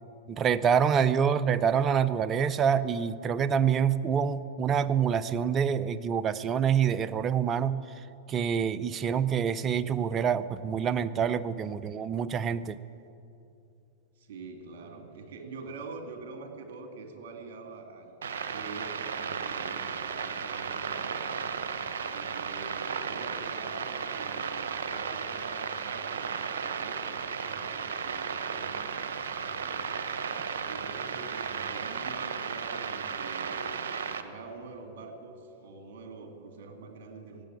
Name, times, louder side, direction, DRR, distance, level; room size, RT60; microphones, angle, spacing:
voice 1, 0.3-7.8 8.3-12.8, right 7 dB, 30° right, 14 dB, 0.6 m, -26 dB
voice 2, 14.2-21.3 22.1-26.4 26.7-30.0 30.6-37.5, right 3 dB, 65° right, 3 dB, 2.8 m, -45 dB
sound 1, 18.2-34.2, right 6 dB, 80° right, 0.9 m, -34 dB
15.5 x 8.5 x 9.2 m, 2.7 s
hypercardioid pair, 110°, 0 cm